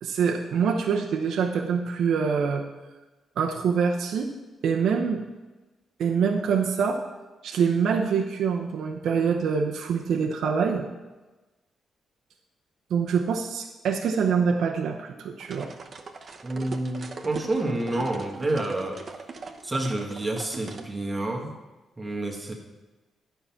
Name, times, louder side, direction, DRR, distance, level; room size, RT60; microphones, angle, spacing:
voice 1, 0.0-2.6 3.4-4.3 4.6-5.3 6.0-7.0 7.4-10.9 12.9-15.7, right 6 dB, 80° right, 2 dB, 0.7 m, -25 dB
sound 1, 15.4-20.9, right 4 dB, 45° right, 0.9 m, -40 dB
voice 2, 16.4-19.0 19.6-21.5 22.0-22.5, right 2 dB, 20° right, 0 dB, 1.4 m, -28 dB
9.7 x 5.7 x 5.7 m, 1.2 s
cardioid pair, 90°, 0 cm